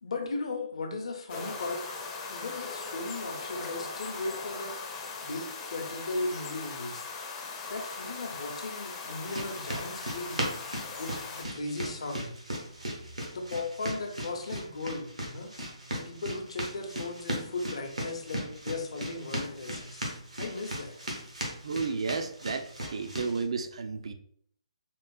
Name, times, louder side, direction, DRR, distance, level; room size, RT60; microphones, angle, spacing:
voice 1, 0.0-1.8 2.3-4.8 5.2-7.0 7.7-10.5 11.0-12.3 13.3-15.5 15.9-20.0 20.4-21.0, left 3 dB, 65° left, 3 dB, 0.6 m, -37 dB
sound 1, 1.3-11.4, left 4 dB, 25° left, 0.4 m, -39 dB
sound 2, 9.2-23.4, right 1 dB, 90° right, 0.9 m, -38 dB
voice 2, 21.6-24.1, right 4 dB, 65° right, 8 dB, 0.3 m, -32 dB
3.7 x 2.0 x 2.3 m, 0.63 s
figure-of-eight pair, 140°, 3 cm